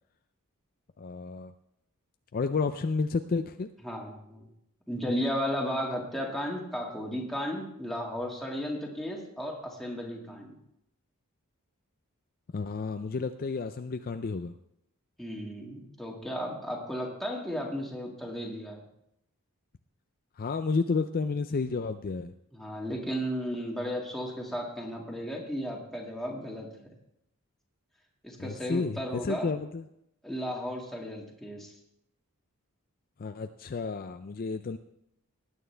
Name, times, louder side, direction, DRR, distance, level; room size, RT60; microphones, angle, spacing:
voice 1, 1.0-1.5 2.3-3.7 12.5-14.5 20.4-22.3 28.4-29.8 33.2-34.8, left 4 dB, 40° left, 8 dB, 0.4 m, -31 dB
voice 2, 3.8-4.5 4.9-10.6 15.2-18.8 22.5-26.7 28.2-29.5 30.2-31.7, equal, ahead, -1 dB, 2.0 m, -34 dB
19.0 x 9.2 x 3.4 m, 0.78 s
head